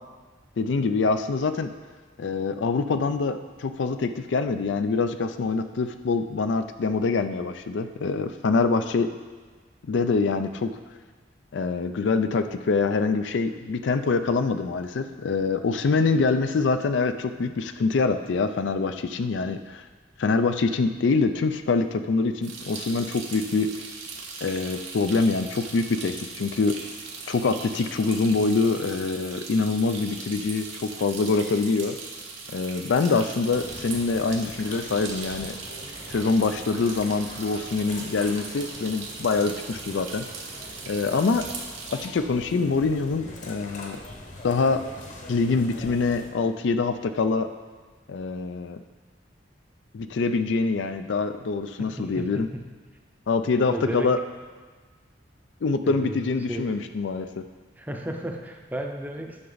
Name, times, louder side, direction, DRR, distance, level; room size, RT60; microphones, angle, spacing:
voice 1, 0.6-1.7 2.2-9.1 9.9-10.8 11.5-19.8 20.2-23.7 24.4-26.8 27.3-32.0 32.5-35.6 36.1-40.3 40.9-41.5 41.9-44.0 44.4-44.8 45.3-47.5 48.1-48.8 49.9-52.5 53.3-54.2 55.6-57.4, left 4 dB, 70° left, 9 dB, 0.4 m, -25 dB
sound 1, 22.4-42.1, right 4 dB, 75° right, 1.2 m, -39 dB
sound 2, 33.5-46.3, left 1 dB, 40° left, 1.0 m, -43 dB
voice 2, 51.8-52.6 53.7-54.1 55.8-56.7 57.8-59.5, right 1 dB, 10° right, 2 dB, 0.6 m, -34 dB
9.5 x 5.8 x 4.0 m, 1.4 s
head